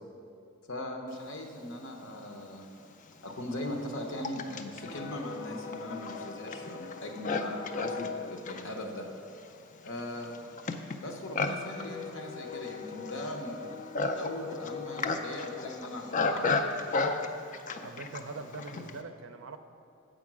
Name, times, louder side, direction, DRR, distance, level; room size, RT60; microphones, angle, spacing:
voice 1, 0.7-2.6 3.2-9.1 9.8-10.5 11.0-13.7 14.1-16.9, left 1 dB, 65° left, 3 dB, 0.8 m, -39 dB
Livestock farm animals working animals, 2.2-2.3 3.1-19.0, left 3 dB, 40° left, 0.4 m, -35 dB
voice 2, 17.8-19.6, right 3 dB, 65° right, 8 dB, 0.5 m, -42 dB
7.6 x 5.1 x 6.0 m, 2.6 s
head